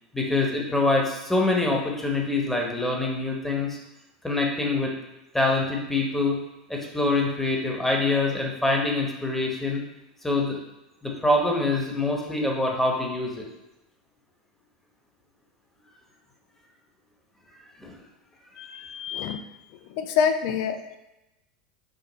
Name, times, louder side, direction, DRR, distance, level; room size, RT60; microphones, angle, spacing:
voice 1, 0.1-3.8 4.2-4.9 5.3-6.4 6.7-9.8 10.2-10.6 11.0-13.4 17.8-18.0 18.5-18.7, left 2 dB, 5° left, -1 dB, 1.0 m, -25 dB
voice 2, 18.6-19.4 19.9-21.0, left 7 dB, 60° left, 7 dB, 0.5 m, -27 dB
5.2 x 2.4 x 4.0 m, 0.95 s
hypercardioid pair, 90°, 4 cm